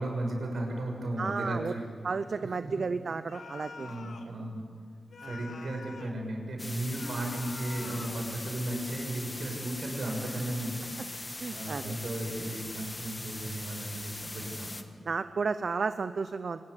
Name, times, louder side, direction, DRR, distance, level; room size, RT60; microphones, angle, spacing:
voice 1, 0.0-1.9 2.4-2.8 3.7-4.7 5.2-14.8, right 1 dB, 70° right, 2 dB, 6.3 m, -35 dB
voice 2, 1.2-1.7 2.0-3.9 5.2-5.3 11.4-12.0 15.1-16.6, right 4 dB, 55° right, 11 dB, 0.7 m, -32 dB
sound 1, 3.3-4.3 5.1-6.2 6.9-8.3, left 5 dB, 80° left, 1.6 m, -47 dB
sound 2, 6.6-14.8, left 2 dB, 25° left, 1.5 m, -41 dB
26.0 x 20.0 x 8.1 m, 2.1 s
wide cardioid pair, 125°, 0 cm